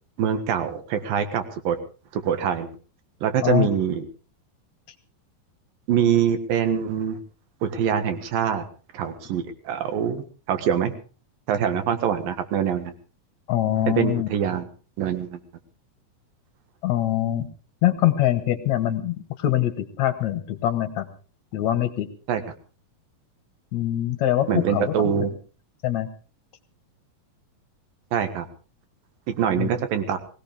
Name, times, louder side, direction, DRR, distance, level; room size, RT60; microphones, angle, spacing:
voice 1, 0.2-1.8 2.1-2.7 3.2-4.0 5.9-7.2 7.6-8.6 8.9-10.9 11.5-12.9 13.9-14.6 15.0-15.4 22.3-22.4 24.5-25.3 28.1-28.5 29.3-30.2, right 8 dB, 75° right, 9 dB, 3.2 m, -24 dB
voice 2, 13.5-14.3 16.8-17.5 17.8-21.1 21.5-22.1 23.7-25.1 25.8-26.1 29.6-29.7, left 13 dB, 60° left, 10 dB, 2.2 m, -23 dB
20.0 x 17.0 x 3.5 m, 0.37 s
omnidirectional pair, 4.2 m